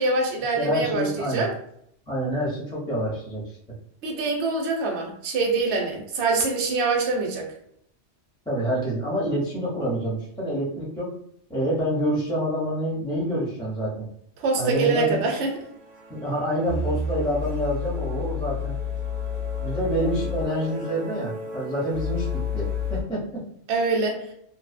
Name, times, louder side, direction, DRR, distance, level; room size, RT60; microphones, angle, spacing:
voice 1, 0.0-1.5 4.0-7.5 14.4-15.5 23.7-24.2, right 3 dB, 75° right, 0 dB, 0.8 m, -24 dB
voice 2, 0.6-1.4 2.1-3.4 8.5-11.2 11.5-14.1 14.6-15.2 16.1-18.8 19.6-23.2, equal, 5° left, -5 dB, 0.6 m, -27 dB
sound 1, 14.4-14.5 14.8-14.9 15.2-23.0, left 5 dB, 45° right, 0.6 m, -31 dB
2.6 x 2.0 x 2.4 m, 0.69 s
omnidirectional pair, 1.2 m